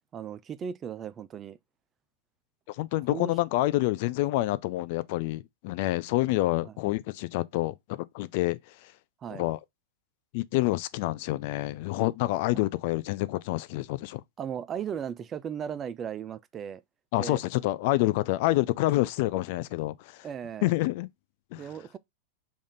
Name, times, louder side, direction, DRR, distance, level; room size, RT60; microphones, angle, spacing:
voice 1, 0.1-1.6 3.1-3.3 6.6-6.7 9.2-9.4 12.5-12.6 14.4-16.8 17.2-17.4 20.2-20.7 21.6-22.0, right 8 dB, 30° right, 0.3 m, -36 dB
voice 2, 2.7-8.9 9.3-9.6 10.3-14.2 17.1-20.3 20.6-21.1 21.5-21.7, left 17 dB, 55° left, 0.3 m, -28 dB
3.5 x 2.5 x 3.9 m
hypercardioid pair, 115°, 0 cm